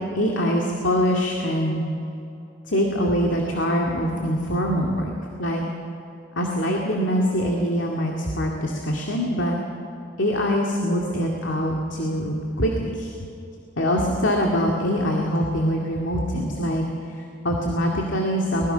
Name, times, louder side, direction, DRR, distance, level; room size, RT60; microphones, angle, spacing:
voice 1, 0.1-1.8 2.7-5.1 5.4-5.6 6.4-9.6 10.2-13.1 13.8-16.8 17.1-18.7, equal, 80° left, 0 dB, 2.3 m, -23 dB
24.5 x 20.5 x 5.7 m, 2.8 s
head